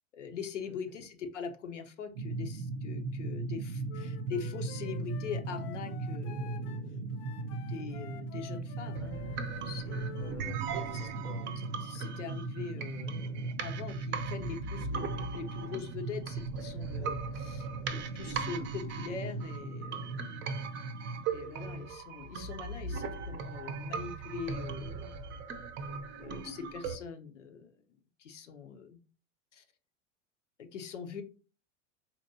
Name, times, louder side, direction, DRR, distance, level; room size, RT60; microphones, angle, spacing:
voice 1, 0.1-7.2 7.6-10.1 10.9-11.1 11.8-20.3 21.3-25.1 26.2-27.8 28.2-29.0 29.5-29.6 30.6-31.2, left 6 dB, 85° left, 5 dB, 0.7 m, -43 dB
sound 1, 2.1-21.2, right 3 dB, 85° right, 0.5 m, -38 dB
Wind instrument woodwind instrument, 3.9-10.4, left 10 dB, 40° left, 0.5 m, -51 dB
sound 2, 8.9-26.9, right 5 dB, 30° right, 0.6 m, -40 dB
voice 2, 10.2-11.5, left 3 dB, 5° left, 4 dB, 0.8 m, -50 dB
4.0 x 2.9 x 2.7 m, 0.35 s
hypercardioid pair, 90°, 36 cm